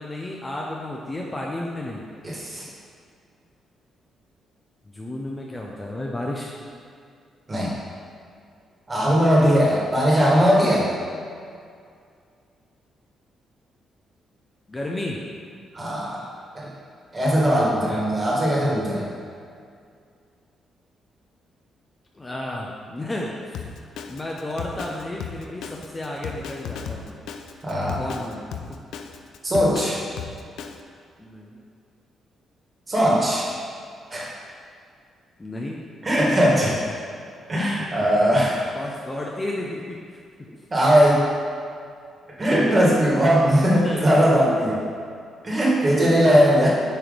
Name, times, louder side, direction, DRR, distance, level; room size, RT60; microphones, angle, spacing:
voice 1, 0.0-2.0 4.9-6.5 14.7-15.2 17.7-17.9 22.1-23.6 24.1-27.1 28.0-28.5 31.2-31.6 35.4-35.8 38.7-40.2 43.7-44.2, left 1 dB, 20° left, -2 dB, 0.6 m, -32 dB
voice 2, 2.2-2.7 7.5-7.7 8.9-10.9 15.7-16.2 16.5-16.7 17.1-19.1 27.6-28.0 29.4-30.0 32.9-33.5 34.1-34.3 36.0-36.8 37.5-38.6 40.7-41.3 42.4-44.8 45.4-46.7, equal, 25° right, -5 dB, 1.6 m, -19 dB
Drum kit, 23.5-30.8, left 7 dB, 85° left, 0.4 m, -35 dB
8.9 x 3.2 x 5.1 m, 2.3 s
cardioid pair, 130°, 0 cm